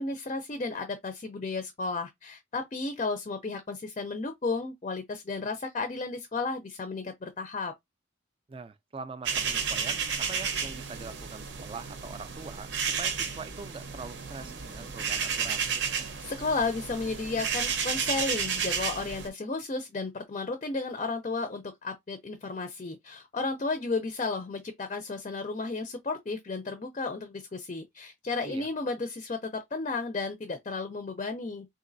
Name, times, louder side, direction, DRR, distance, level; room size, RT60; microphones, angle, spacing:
voice 1, 0.0-7.7 16.2-31.7, left 3 dB, 35° left, 0.4 m, -33 dB
voice 2, 8.5-12.7 13.0-15.7 28.4-28.7, right 4 dB, 30° right, 0.3 m, -43 dB
sound 1, 9.2-19.3, right 6 dB, 70° right, 0.7 m, -32 dB
3.9 x 2.5 x 2.6 m
head